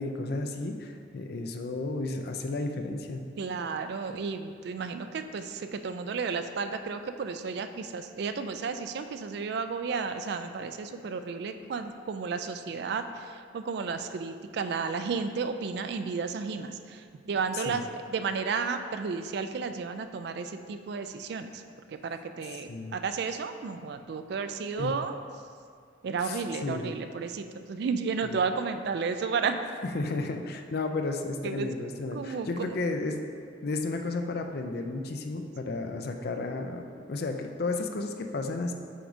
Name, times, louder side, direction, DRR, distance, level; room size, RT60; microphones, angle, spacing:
voice 1, 0.0-3.2 17.5-17.8 22.5-23.0 24.8-24.9 26.2-26.9 28.2-28.4 29.8-33.2 33.6-38.7, left 3 dB, 55° left, 5 dB, 0.4 m, -33 dB
voice 2, 3.4-21.6 21.9-25.1 26.0-29.7 31.4-31.7 32.1-32.8, right 5 dB, 60° right, 9 dB, 0.3 m, -33 dB
7.7 x 2.6 x 4.9 m, 2.1 s
head